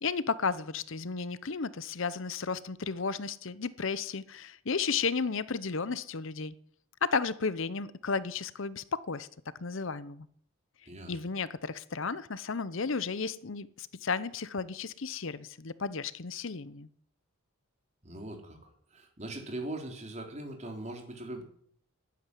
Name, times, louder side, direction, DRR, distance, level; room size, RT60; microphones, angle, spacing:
voice 1, 0.0-6.5 7.0-9.3 9.6-10.3 11.1-16.9, left 5 dB, 60° left, 0.7 m, -33 dB
voice 2, 10.9-11.2 18.0-18.6 18.9-21.4, right 1 dB, 30° right, 3.6 m, -40 dB
12.5 x 11.0 x 9.9 m
head